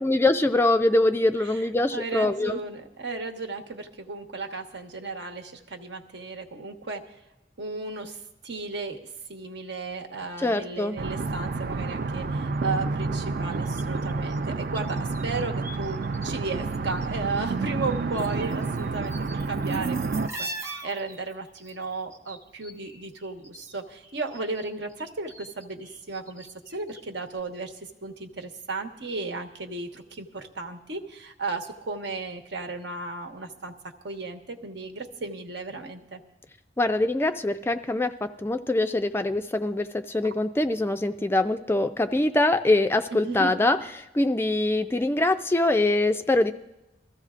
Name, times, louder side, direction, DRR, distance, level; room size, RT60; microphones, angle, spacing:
voice 1, 0.0-2.6 10.4-11.0 36.8-38.1 38.4-43.8 44.1-46.5, left 2 dB, 15° left, 9 dB, 0.3 m, -23 dB
voice 2, 1.9-7.0 7.6-8.2 8.4-9.0 9.3-33.7 34.0-36.2 43.1-43.5, right 3 dB, 70° right, 5 dB, 1.2 m, -35 dB
sound 1, 11.0-20.3, right 3 dB, 55° right, 0.4 m, -29 dB
sound 2, 13.5-16.3 16.5-17.5 17.8-23.7 24.0-27.1 27.3-27.4, right 2 dB, 15° right, 0.8 m, -43 dB
22.5 x 14.5 x 2.5 m, 0.99 s
head